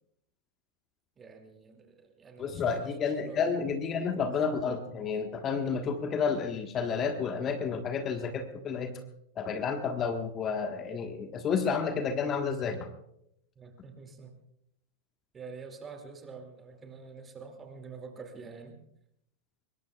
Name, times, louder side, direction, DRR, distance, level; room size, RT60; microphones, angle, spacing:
voice 1, 1.2-2.9 3.2-3.5 13.6-14.4 15.3-18.8, right 5 dB, 20° right, 5 dB, 2.5 m, -46 dB
voice 2, 2.4-8.9 9.4-12.9, left 5 dB, 30° left, 6 dB, 1.4 m, -31 dB
24.5 x 21.5 x 2.4 m, 0.76 s
figure-of-eight pair, 90°, 0 cm